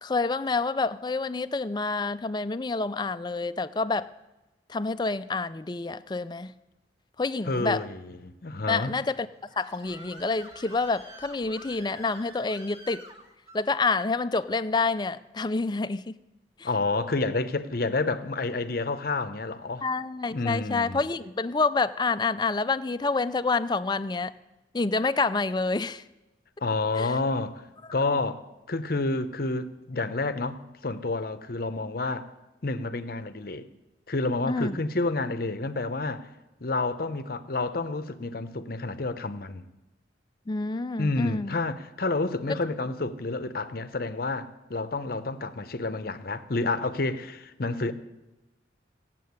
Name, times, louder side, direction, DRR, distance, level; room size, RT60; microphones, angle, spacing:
voice 1, 0.0-4.1 4.7-6.5 7.2-7.8 8.7-9.3 9.6-13.1 13.5-16.1 16.6-16.7 19.8-24.3 24.7-26.0 27.0-27.1 34.5-34.8 40.5-41.6 42.5-42.6, left 3 dB, 25° left, 0.4 m, -28 dB
voice 2, 7.5-9.0 16.6-19.9 20.3-21.0 26.6-27.6 27.9-32.3 32.6-33.7 34.1-36.3 36.6-39.7 41.0-47.9, left 3 dB, 50° left, 0.8 m, -29 dB
Screaming, 9.1-13.7, right 1 dB, 30° right, 1.7 m, -48 dB
16.5 x 7.6 x 9.5 m
head